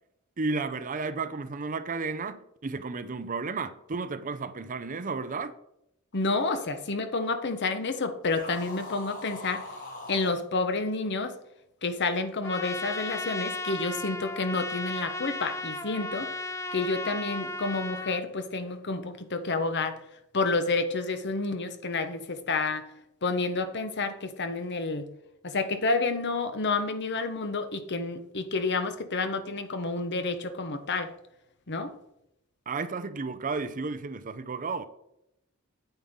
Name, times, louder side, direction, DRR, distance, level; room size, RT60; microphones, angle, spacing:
voice 1, 0.4-5.5 32.7-34.8, right 4 dB, 40° right, 0.6 m, -33 dB
voice 2, 6.1-9.6 10.1-11.3 11.8-16.3 16.7-20.0 20.3-22.8 23.2-25.1 25.4-31.1 31.7-31.9, left 3 dB, 55° left, 1.0 m, -29 dB
sound 1, 8.3-10.4, left 2 dB, 40° left, 2.1 m, -41 dB
Trumpet, 12.4-18.2, left 2 dB, 15° left, 0.4 m, -35 dB
8.9 x 8.5 x 3.7 m
head